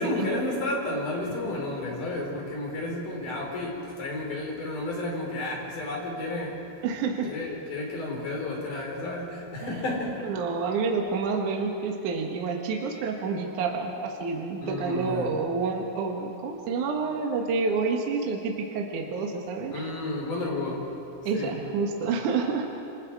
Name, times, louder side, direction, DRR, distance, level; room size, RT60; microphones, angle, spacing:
voice 1, 0.0-6.7 7.2-10.2 14.6-15.3 19.7-20.9 21.3-21.6, left 2 dB, 40° left, -1 dB, 5.5 m, -32 dB
voice 2, 6.8-7.3 9.6-9.7 10.2-19.9 21.2-22.8, right 4 dB, 65° right, 1 dB, 1.9 m, -29 dB
27.0 x 26.5 x 4.9 m, 2.7 s
omnidirectional pair, 5.9 m